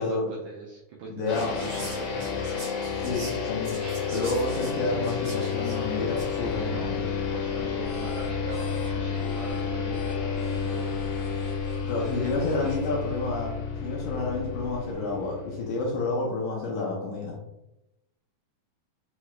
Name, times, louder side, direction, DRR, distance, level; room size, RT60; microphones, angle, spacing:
voice 1, 0.0-2.3 6.7-7.0 7.3-11.0 12.1-12.7, right 3 dB, 85° right, -2 dB, 1.7 m, -41 dB
voice 2, 1.1-1.6 2.9-7.0 11.8-17.4, left 3 dB, 75° left, -3 dB, 2.0 m, -30 dB
Whispering, 1.2-6.4, right 2 dB, 60° right, 1.2 m, -44 dB
sound 1, 1.3-16.1, left 6 dB, 90° left, 2.5 m, -31 dB
sound 2, 6.1-14.9, left 4 dB, 55° left, 1.3 m, -42 dB
5.7 x 2.4 x 3.1 m, 0.88 s
omnidirectional pair, 4.2 m